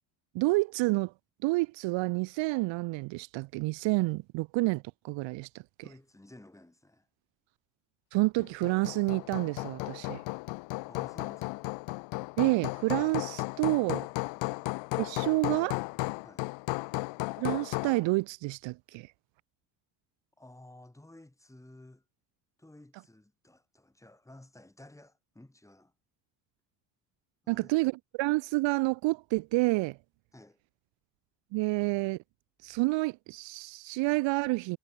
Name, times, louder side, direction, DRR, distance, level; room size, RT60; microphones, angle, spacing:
voice 1, 0.3-1.1 1.4-5.5 8.1-10.2 12.4-14.1 15.0-15.8 17.4-19.1 27.5-30.0 31.5-32.2 32.6-34.8, right 23 dB, 80° right, 0.9 m, -29 dB
voice 2, 5.8-7.1 10.9-11.7 16.2-16.5 20.4-22.0 22.6-25.9 27.4-27.7 30.3-30.6, left 1 dB, 5° left, 6.5 m, -54 dB
Hammer, 8.4-18.0, left 26 dB, 90° left, 1.0 m, -35 dB
cardioid pair, 120°, 44 cm